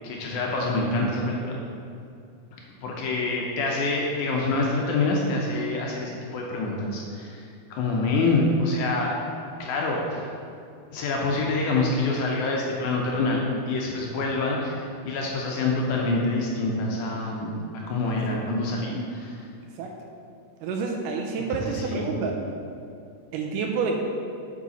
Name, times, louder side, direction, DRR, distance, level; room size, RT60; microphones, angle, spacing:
voice 1, 0.0-1.6 2.8-9.2 9.6-10.3 10.9-17.5 17.9-19.4 21.5-22.1, left 3 dB, 75° left, -1 dB, 2.0 m, -26 dB
voice 2, 20.6-22.4 23.3-24.0, right 5 dB, 80° right, 2 dB, 2.1 m, -28 dB
7.5 x 5.6 x 4.1 m, 2.5 s
omnidirectional pair, 4.0 m